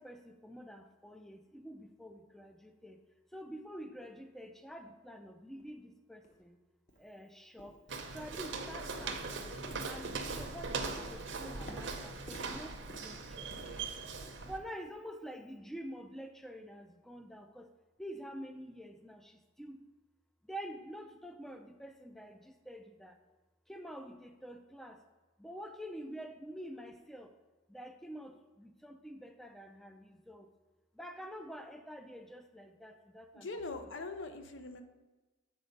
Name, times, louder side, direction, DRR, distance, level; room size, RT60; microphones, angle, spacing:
voice 1, 0.0-3.0 3.3-6.6 7.0-7.8 8.1-9.5 9.8-13.5 14.4-17.7 18.0-19.8 20.5-23.2 23.7-25.0 25.4-27.3 27.7-30.5 31.0-33.9, equal, ahead, 6 dB, 0.4 m, -47 dB
sound 1, 5.6-5.7 6.2-6.4 6.9-7.0 7.6-7.9 8.2-8.7 9.0-13.9 14.2-14.5 14.9-15.0 15.6-15.7, equal, 40° left, 1.2 m, -52 dB
Walk footsteps, 7.9-14.6, right 4 dB, 70° right, 0.8 m, -40 dB
voice 2, 33.3-34.8, left 3 dB, 75° left, 8 dB, 0.7 m, -42 dB
7.7 x 4.3 x 5.2 m, 1.2 s
head